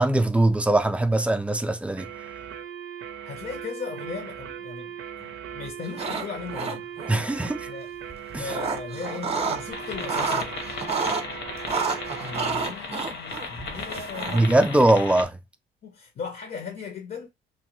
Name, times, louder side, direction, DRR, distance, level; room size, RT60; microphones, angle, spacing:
voice 1, 0.0-2.1 7.1-7.7 8.3-8.5 14.3-15.4, right 1 dB, 5° right, 0.3 m, -21 dB
sound 1, 2.0-12.7, right 8 dB, 90° right, 0.5 m, -38 dB
voice 2, 3.2-6.9 7.7-7.9 8.4-10.6 12.2-14.8 15.8-17.3, left 5 dB, 50° left, 0.6 m, -37 dB
sound 2, 5.9-6.3 6.5-7.1 8.1-9.6 9.9-11.2 11.7-14.6, right 4 dB, 30° right, 0.7 m, -29 dB
sound 3, 9.7-15.2, left 4 dB, 70° left, 0.9 m, -36 dB
3.0 x 2.1 x 2.9 m
cardioid pair, 90°, 20 cm